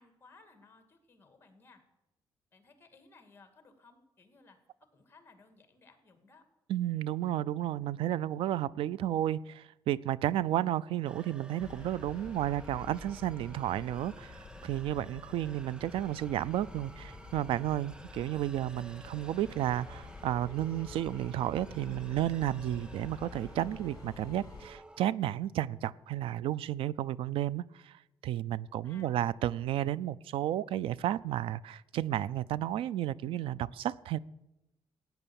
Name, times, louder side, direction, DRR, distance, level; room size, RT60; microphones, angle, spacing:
voice 1, 0.0-1.8 2.5-6.4 28.8-29.2, left 3 dB, 25° left, 8 dB, 2.1 m, -60 dB
voice 2, 6.7-34.2, right 12 dB, 85° right, 22 dB, 0.4 m, -32 dB
sound 1, 11.0-25.2, right 2 dB, 10° right, 0.4 m, -53 dB
sound 2, 11.6-24.7, left 4 dB, 40° left, 2.6 m, -49 dB
15.5 x 9.2 x 7.0 m, 0.94 s
cardioid pair, 120°, 9 cm